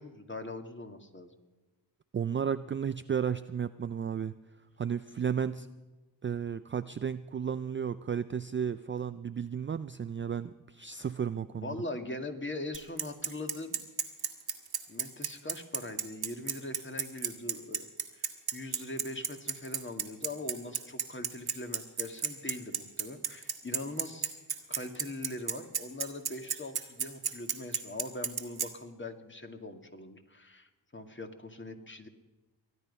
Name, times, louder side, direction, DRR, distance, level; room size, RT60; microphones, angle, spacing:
voice 1, 0.0-1.3 5.5-5.7 11.5-13.8 14.9-17.9 18.1-18.3 18.5-24.4 24.7-32.1, left 2 dB, 25° left, 6 dB, 2.1 m, -41 dB
voice 2, 2.1-4.3 4.8-5.7 6.2-11.8, right 7 dB, 25° right, 13 dB, 0.4 m, -33 dB
Bicycle, 12.7-28.7, right 7 dB, 50° right, 1.8 m, -32 dB
24.0 x 9.5 x 5.5 m, 1.2 s
supercardioid pair, 45°, 47 cm